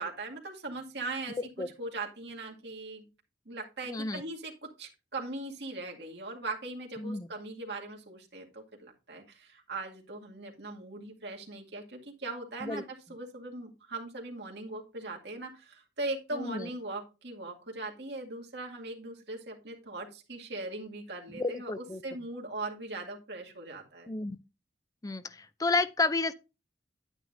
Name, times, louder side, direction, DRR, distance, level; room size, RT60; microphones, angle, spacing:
voice 1, 0.0-1.4 1.8-3.0 3.5-24.1, right 2 dB, 65° right, 2.2 m, -40 dB
voice 2, 3.9-4.2 7.0-7.3 12.6-12.8 16.3-16.6 21.3-22.0 24.1-24.4 25.0-25.2 25.6-26.3, left 3 dB, 20° left, 0.4 m, -30 dB
9.6 x 9.4 x 2.6 m
head